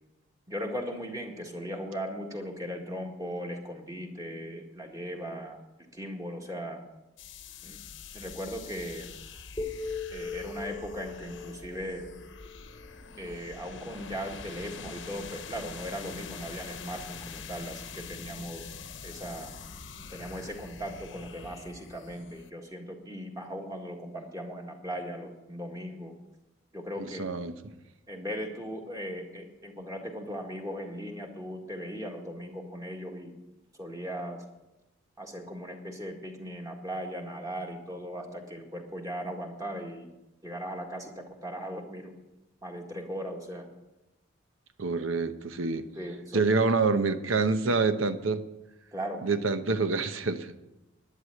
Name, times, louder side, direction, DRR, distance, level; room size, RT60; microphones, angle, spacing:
voice 1, 0.5-5.6 5.9-6.8 7.6-7.8 8.1-9.1 10.1-12.1 13.2-18.8 19.0-19.5 20.1-26.1 26.7-27.3 28.1-33.3 33.8-34.4 35.2-40.1 40.4-42.1 42.6-43.7 45.9-46.8 47.6-47.8 48.9-49.3, equal, 15° right, 1 dB, 1.8 m, -38 dB
sound 1, 7.2-22.5, left 5 dB, 65° left, 1.0 m, -45 dB
sound 2, 9.6-13.7, left 4 dB, 15° left, 1.1 m, -40 dB
voice 2, 27.2-27.7 44.8-45.9 46.3-48.4 49.2-50.6, right 4 dB, 80° right, 10 dB, 0.9 m, -27 dB
11.0 x 9.8 x 7.7 m, 0.97 s
head